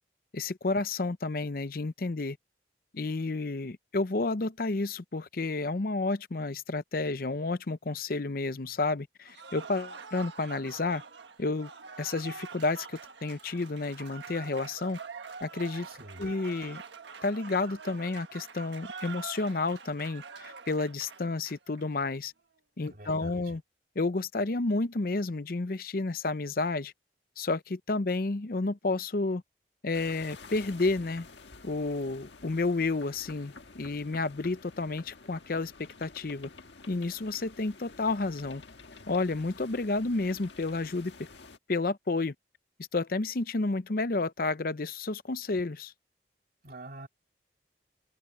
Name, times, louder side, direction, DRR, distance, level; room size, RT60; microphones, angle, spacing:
voice 1, 0.3-2.4 2.9-11.0 11.4-11.7 12.0-15.0 15.4-15.9 16.2-16.8 17.2-22.3 22.8-23.6 24.0-26.9 27.4-29.4 29.8-31.3 31.6-36.5 36.9-38.6 39.1-41.3 41.7-42.3 42.9-45.9, left 3 dB, 55° left, 0.7 m, -31 dB
Cheering / Applause, 9.3-21.9, right 5 dB, 85° right, 1.5 m, -45 dB
voice 2, 15.8-16.2 22.9-23.3 46.6-47.1, right 2 dB, 55° right, 2.9 m, -45 dB
sound 1, 29.9-41.6, left 4 dB, 85° left, 1.6 m, -50 dB
open air
head